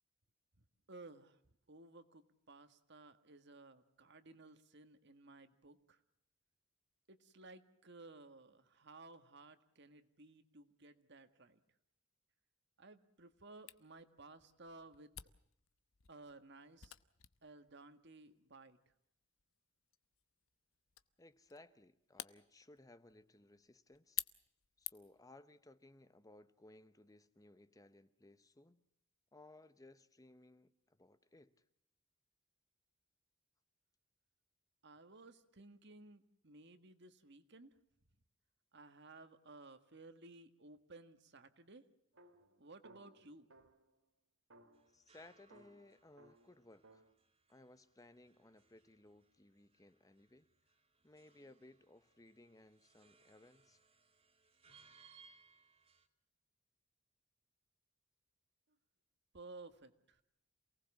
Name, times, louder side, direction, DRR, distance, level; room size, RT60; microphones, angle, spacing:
voice 1, 0.9-1.4 1.7-6.0 7.1-11.6 12.8-15.1 16.1-16.9 17.4-18.8 34.8-37.7 38.7-41.8 42.6-43.5 59.3-60.2, right 2 dB, 60° right, 1.7 m, -57 dB
Camera, 13.7-25.3, left 14 dB, 90° left, 1.0 m, -52 dB
voice 2, 21.2-24.2 24.8-28.8 29.3-31.5 44.9-47.0 47.5-50.5 51.0-53.8, left 2 dB, 15° left, 0.8 m, -61 dB
sound 1, 42.1-44.0 44.5-47.1, right 2 dB, 80° right, 2.8 m, -64 dB
sound 2, 44.7-56.1, right 5 dB, 30° right, 2.4 m, -69 dB
28.0 x 19.0 x 7.2 m
head